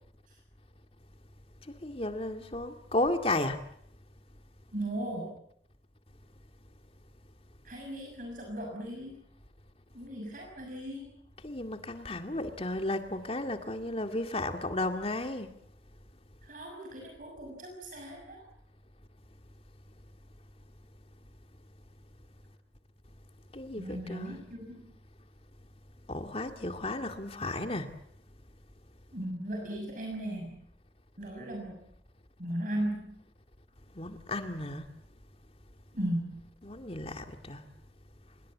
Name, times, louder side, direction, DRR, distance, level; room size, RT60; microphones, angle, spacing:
voice 1, 1.7-3.6 11.4-15.5 23.5-24.4 26.1-27.9 34.0-34.9 36.7-37.6, left 2 dB, 30° left, 2.1 m, -33 dB
voice 2, 4.7-5.4 7.6-9.2 9.9-11.1 16.4-18.4 23.8-24.8 29.1-30.6 31.2-31.8 32.4-33.2 35.9-36.4, right 1 dB, 45° right, 6.3 m, -37 dB
27.0 x 22.5 x 7.5 m
head